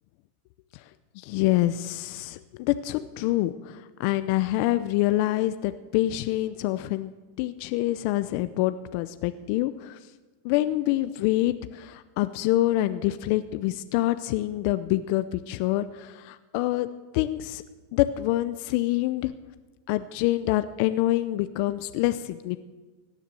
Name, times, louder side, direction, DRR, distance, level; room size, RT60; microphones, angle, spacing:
voice 1, 1.2-7.1 7.4-10.0 10.4-16.9 17.1-17.6 17.9-19.3 19.9-22.6, left 15 dB, 55° left, 12 dB, 0.6 m, -26 dB
17.0 x 10.0 x 7.6 m, 1.3 s
hypercardioid pair, 115°, 0 cm